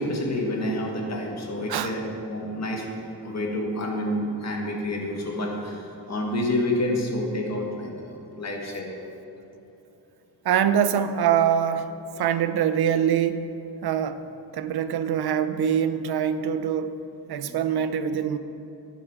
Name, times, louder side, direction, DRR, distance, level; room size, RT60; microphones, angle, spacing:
voice 1, 0.0-2.9 3.2-9.0 17.4-17.6, left 1 dB, 40° left, 0 dB, 1.7 m, -29 dB
voice 2, 10.4-13.6 13.8-14.2 14.5-17.0 17.3-18.4, right 8 dB, 65° right, 11 dB, 0.6 m, -24 dB
11.5 x 9.2 x 4.9 m, 2.9 s
wide cardioid pair, 170°, 41 cm